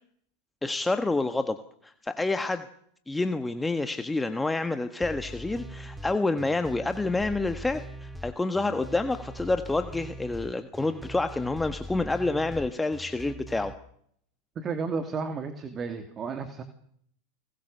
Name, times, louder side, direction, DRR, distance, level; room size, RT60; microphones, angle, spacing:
voice 1, 0.6-1.6 1.8-2.6 3.1-13.7, left 2 dB, 10° left, 9 dB, 1.5 m, -28 dB
sound 1, 5.0-13.7, right 1 dB, 5° right, 1.9 m, -42 dB
voice 2, 14.6-16.6, right 5 dB, 30° right, 9 dB, 2.7 m, -32 dB
30.0 x 20.0 x 6.8 m, 0.68 s
hypercardioid pair, 105°, 0 cm